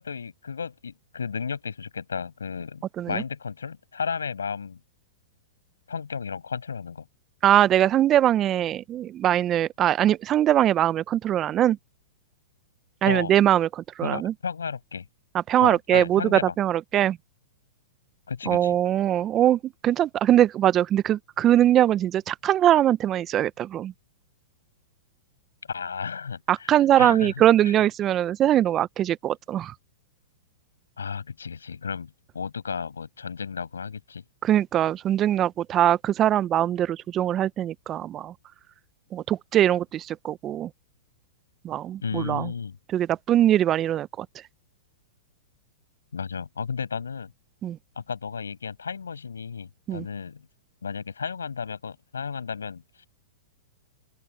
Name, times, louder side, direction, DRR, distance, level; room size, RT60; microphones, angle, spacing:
voice 1, 0.0-4.8 5.9-7.1 13.0-13.3 14.0-15.1 15.6-16.5 18.3-18.8 25.7-27.3 27.6-27.8 31.0-34.2 42.0-42.8 46.1-47.3 48.0-50.4 50.8-53.1, left 6 dB, 85° left, 7.1 m, -33 dB
voice 2, 7.4-11.8 13.0-14.3 15.3-17.2 18.5-23.9 26.5-29.7 34.4-38.3 39.1-40.7 41.6-42.5 42.9-44.3 47.6-47.8 49.9-50.1, right 11 dB, 30° right, 1.0 m, -22 dB
open air
hypercardioid pair, 115°, 0 cm